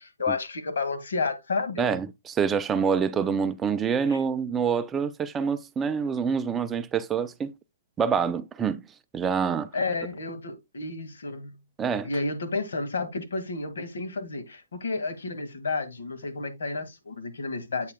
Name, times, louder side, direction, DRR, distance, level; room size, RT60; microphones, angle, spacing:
voice 1, 0.0-1.9 4.1-4.2 9.7-11.5 12.0-17.9, left 3 dB, 75° left, 1.9 m, -31 dB
voice 2, 1.8-7.5 8.0-8.8 9.1-9.7 11.8-12.1, right 6 dB, 10° right, 0.4 m, -26 dB
8.3 x 7.1 x 2.2 m
hypercardioid pair, 160°, 0 cm